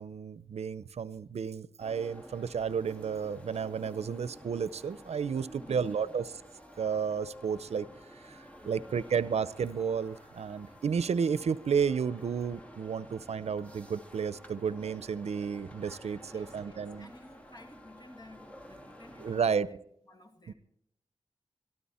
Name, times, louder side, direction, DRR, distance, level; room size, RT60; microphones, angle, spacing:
voice 1, 0.0-6.3 6.8-17.1 19.2-19.8 20.5-20.6, right 6 dB, 85° right, 17 dB, 0.6 m, -32 dB
sound 1, 1.8-19.6, equal, 10° left, 2.3 m, -52 dB
voice 2, 5.5-6.1 8.6-9.0 16.3-20.5, left 2 dB, 40° left, 6 dB, 2.4 m, -54 dB
23.0 x 13.0 x 4.3 m, 0.73 s
wide cardioid pair, 70°, 11 cm